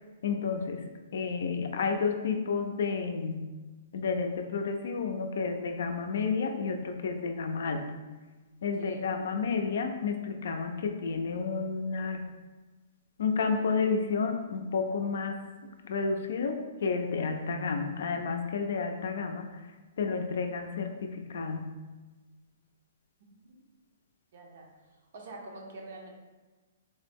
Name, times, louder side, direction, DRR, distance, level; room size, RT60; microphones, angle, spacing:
voice 1, 0.2-0.8 1.1-3.4 3.9-7.9 8.6-12.2 13.2-15.4 15.8-19.6 20.0-21.7, left 5 dB, 70° left, 5 dB, 0.4 m, -31 dB
voice 2, 8.7-9.1 23.3-23.6 24.3-24.7 25.1-26.1, right 2 dB, 65° right, 1 dB, 0.7 m, -46 dB
3.7 x 2.0 x 3.4 m, 1.3 s
hypercardioid pair, 150°, 0 cm